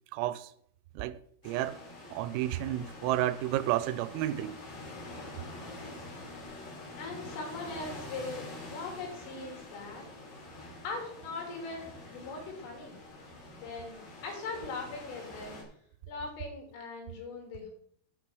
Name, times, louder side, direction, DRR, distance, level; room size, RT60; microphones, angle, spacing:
voice 1, 0.1-0.5 1.0-1.8 2.1-4.6, right 14 dB, 90° right, 3.3 m, -31 dB
sound 1, 1.4-15.6, left 2 dB, 50° left, 4.4 m, -46 dB
voice 2, 7.0-10.0 10.8-13.0 13.6-15.6 16.1-17.7, left 3 dB, 75° left, 5.3 m, -40 dB
9.4 x 6.1 x 7.6 m
omnidirectional pair, 5.9 m